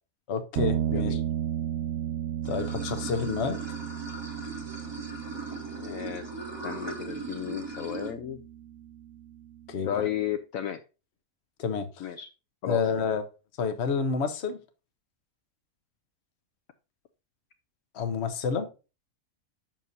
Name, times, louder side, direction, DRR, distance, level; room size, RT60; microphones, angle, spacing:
voice 1, 0.3-1.2 2.5-3.6 9.7-10.0 11.6-12.1 12.7-13.2 13.6-14.6 17.9-18.7, left 5 dB, 55° left, 1.0 m, -29 dB
sound 1, 0.5-10.0, right 10 dB, 65° right, 0.7 m, -34 dB
voice 2, 0.9-1.2 5.7-6.3 6.6-8.4 9.8-10.8 12.0-12.3 12.6-12.8, left 10 dB, 70° left, 0.9 m, -33 dB
Water / Sink (filling or washing), 2.4-8.1, right 3 dB, 20° right, 1.1 m, -39 dB
7.5 x 6.1 x 2.7 m
omnidirectional pair, 1.6 m